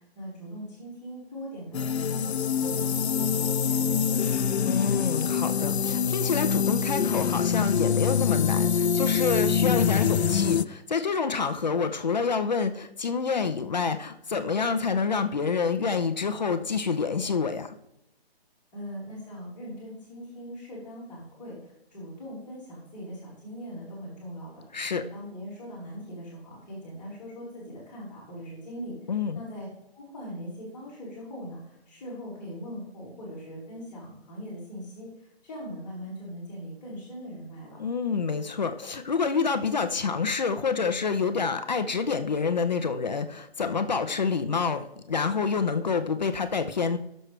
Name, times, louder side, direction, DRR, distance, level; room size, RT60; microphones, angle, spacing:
voice 1, 0.0-4.5 18.7-29.7 29.9-37.8, equal, 10° left, -12 dB, 2.6 m, -41 dB
sound 1, 1.7-10.6, left 7 dB, 90° left, 0.6 m, -25 dB
voice 2, 4.7-17.7 24.7-25.0 29.1-29.4 37.8-47.0, left 5 dB, 45° left, 8 dB, 0.7 m, -27 dB
16.5 x 6.5 x 3.3 m, 0.81 s
hypercardioid pair, 175°, 32 cm